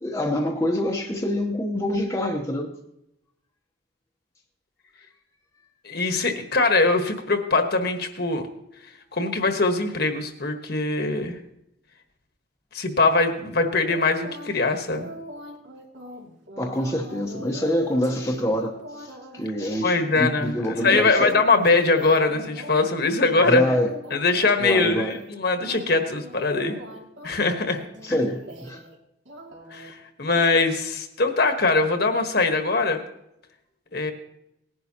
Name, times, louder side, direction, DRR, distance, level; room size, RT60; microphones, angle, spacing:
voice 1, 0.0-2.7 16.6-21.4 23.5-23.9 24.6-25.1 28.0-28.8, left 1 dB, 15° left, 0 dB, 0.9 m, -26 dB
voice 2, 5.8-8.4 9.1-11.4 12.7-15.1 19.8-23.6 24.1-26.8 27.2-27.8 28.1-28.2 29.7-33.0 33.9-34.1, left 3 dB, 50° left, 6 dB, 1.3 m, -22 dB
sound 1, 13.9-14.6 14.9-22.9 23.2-24.6 24.8-25.3 25.6-29.0 29.3-29.9 30.3-30.5, right 1 dB, 70° right, 2.5 m, -41 dB
19.0 x 11.0 x 2.9 m, 0.81 s
head